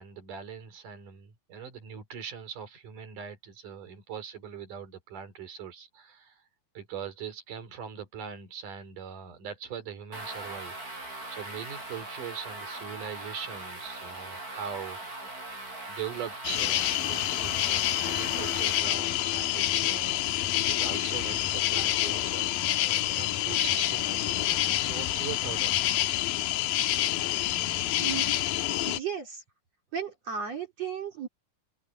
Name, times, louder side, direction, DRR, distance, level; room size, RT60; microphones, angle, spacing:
voice 1, 0.0-6.4 6.7-15.0 15.9-20.3 20.6-22.8 23.1-25.9, right 7 dB, 65° right, 5.0 m, -41 dB
sound 1, 10.1-18.8, right 2 dB, 25° right, 5.9 m, -40 dB
sound 2, 16.4-29.0, left 14 dB, 90° left, 2.7 m, -27 dB
voice 2, 27.9-28.3 28.9-29.4 29.9-31.3, right 7 dB, 50° right, 4.9 m, -34 dB
omnidirectional pair, 4.0 m